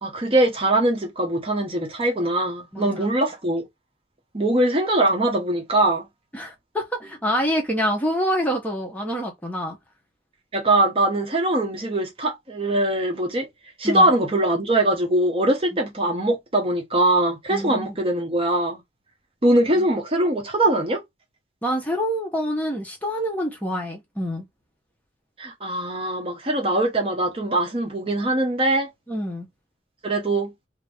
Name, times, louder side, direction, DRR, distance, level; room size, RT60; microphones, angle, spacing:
voice 1, 0.0-3.6 4.3-6.0 10.5-13.5 13.8-18.8 19.4-21.0 25.4-28.9 30.0-30.5, right 1 dB, 30° right, 0.8 m, -22 dB
voice 2, 6.3-9.8 13.8-14.1 17.5-17.9 21.6-24.4 29.1-29.5, equal, 10° left, 0.9 m, -26 dB
2.9 x 2.5 x 3.4 m
head